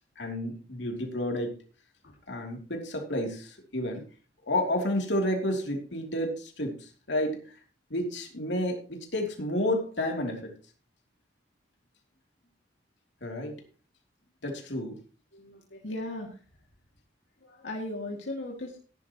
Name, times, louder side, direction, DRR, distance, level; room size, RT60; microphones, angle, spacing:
voice 1, 0.2-1.6 2.3-4.0 4.5-7.4 7.9-10.5 13.2-13.6 14.4-15.0, left 1 dB, 70° left, 2 dB, 3.1 m, -31 dB
voice 2, 15.3-16.4 17.4-18.8, left 1 dB, 85° left, -1 dB, 2.5 m, -37 dB
16.0 x 11.0 x 3.1 m, 0.38 s
head